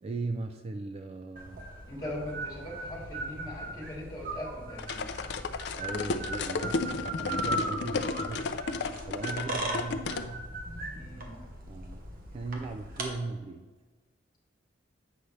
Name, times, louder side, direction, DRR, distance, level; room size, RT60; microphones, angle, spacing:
voice 1, 0.0-1.7 5.7-8.6 9.1-10.5 11.7-12.0 12.3-13.7, right 3 dB, 30° right, 6 dB, 0.3 m, -38 dB
sound 1, 1.4-13.1, right 1 dB, 45° right, 1.1 m, -38 dB
voice 2, 1.9-5.2 8.3-8.5 10.9-11.4, left 1 dB, 20° left, -4 dB, 2.2 m, -40 dB
sound 2, 4.8-10.3, left 4 dB, 60° left, 0.4 m, -33 dB
8.1 x 5.6 x 3.2 m, 1.3 s
head